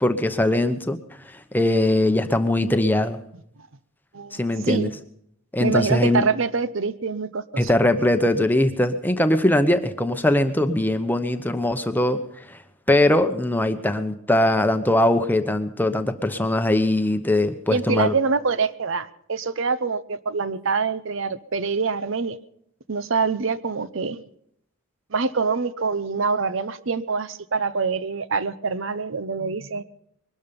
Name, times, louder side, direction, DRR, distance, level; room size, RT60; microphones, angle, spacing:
voice 1, 0.0-1.0 1.3-3.2 4.3-4.9 5.5-6.2 7.6-12.2 12.5-12.6 12.9-18.1, left 1 dB, 10° left, 8 dB, 0.9 m, -21 dB
voice 2, 4.1-4.9 5.6-7.7 17.7-22.4 22.9-24.2 25.1-29.8, right 4 dB, 60° right, 15 dB, 0.7 m, -25 dB
22.0 x 12.5 x 5.3 m, 0.71 s
head